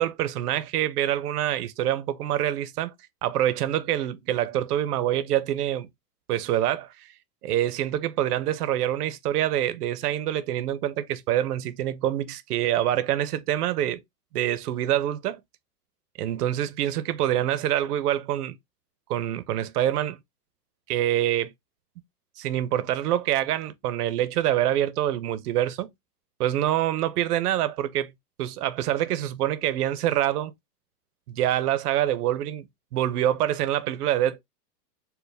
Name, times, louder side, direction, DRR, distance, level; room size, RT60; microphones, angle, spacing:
voice 1, 0.0-2.9 3.2-5.9 6.3-7.1 7.4-14.0 14.3-15.4 16.2-18.6 19.1-20.2 20.9-21.5 22.4-25.9 26.4-28.1 28.4-30.5 31.3-32.7 32.9-34.4, right 12 dB, 70° right, 0.7 m, -26 dB
4.6 x 2.2 x 3.2 m
supercardioid pair, 170°, 49 cm